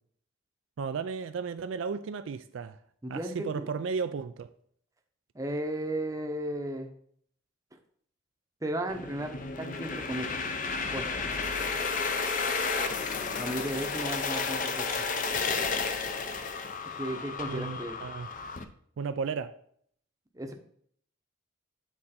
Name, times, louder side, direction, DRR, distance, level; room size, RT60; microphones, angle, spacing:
voice 1, 0.8-2.8 3.1-4.5 17.5-18.3 19.0-19.5, right 5 dB, 65° right, 0.3 m, -34 dB
voice 2, 3.0-3.7 5.3-6.9 8.6-10.3 10.9-11.2 13.4-14.9 16.9-18.0 20.3-20.5, right 1 dB, 15° right, 0.7 m, -34 dB
sound 1, 8.9-18.6, left 4 dB, 40° left, 0.5 m, -32 dB
sound 2, 10.6-16.4, left 1 dB, 85° left, 3.0 m, -45 dB
8.8 x 4.2 x 4.3 m
head